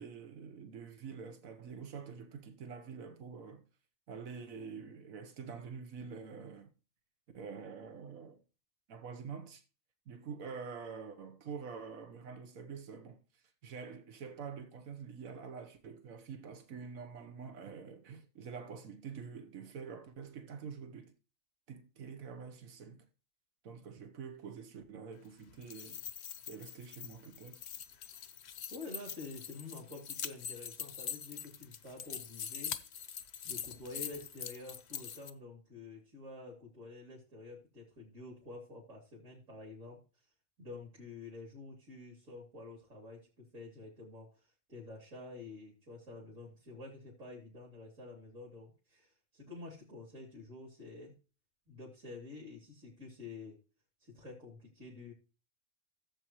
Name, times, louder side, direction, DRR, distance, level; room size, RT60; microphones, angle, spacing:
voice 1, 0.0-3.6 4.1-6.7 7.3-8.4 8.9-9.6 10.1-21.1 21.7-23.1 23.6-26.0 26.5-27.6, right 6 dB, 85° right, 1.5 m, -46 dB
sound 1, 25.5-35.3, left 8 dB, 60° left, 0.9 m, -44 dB
voice 2, 28.7-32.8 33.4-40.0 40.6-44.4 44.7-51.1 51.7-53.6 54.0-55.1, left 3 dB, 65° right, 3.4 m, -49 dB
15.5 x 7.7 x 3.1 m
omnidirectional pair, 1.4 m